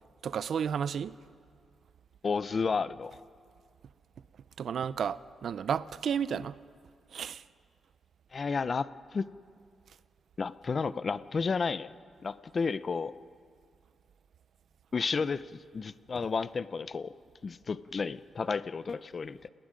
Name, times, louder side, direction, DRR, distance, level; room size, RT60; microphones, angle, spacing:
voice 1, 0.2-1.1 4.6-6.6 7.1-7.4, right 7 dB, 55° right, 0.5 m, -32 dB
voice 2, 2.2-3.2 8.3-9.3 10.4-11.9 12.2-13.1 14.9-17.1 17.4-19.5, left 5 dB, 35° left, 0.5 m, -32 dB
29.0 x 19.0 x 5.2 m
wide cardioid pair, 150°, 0 cm